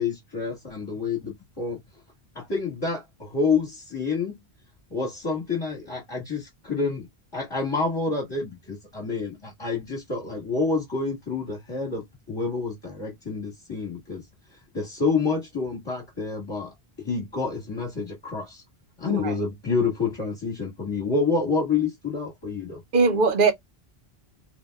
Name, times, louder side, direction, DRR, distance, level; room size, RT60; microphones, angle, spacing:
voice 1, 0.0-1.8 2.3-4.4 4.9-7.1 7.3-14.2 14.7-16.7 17.0-18.6 19.0-22.8, left 4 dB, 25° left, 1.4 m, -28 dB
voice 2, 19.0-19.3 22.9-23.5, right 4 dB, 60° right, 0.9 m, -20 dB
3.4 x 2.7 x 2.2 m
omnidirectional pair, 1.0 m